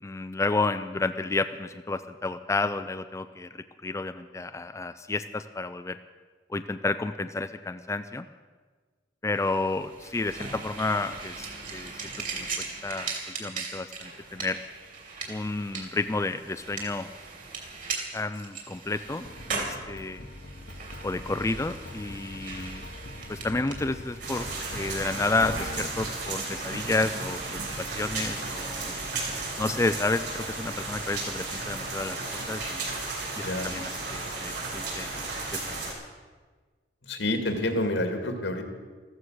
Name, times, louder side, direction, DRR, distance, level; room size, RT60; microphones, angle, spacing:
voice 1, 0.0-6.0 6.5-8.3 9.2-11.5 11.7-11.9 12.3-14.6 15.3-17.1 18.1-20.2 21.0-22.8 23.3-24.5 24.7-29.0 29.6-32.8 33.4-35.1 35.5-35.8, left 3 dB, 15° left, 10 dB, 0.4 m, -31 dB
sound 1, 9.3-29.1, right 4 dB, 45° right, 2.9 m, -40 dB
sound 2, 19.2-25.9, left 1 dB, 50° left, 1.1 m, -42 dB
sound 3, 24.2-35.9, right 3 dB, 65° right, 6.6 m, -34 dB
voice 2, 37.0-38.6, left 1 dB, 75° left, 5 dB, 2.2 m, -28 dB
14.5 x 14.5 x 6.3 m, 1.4 s
head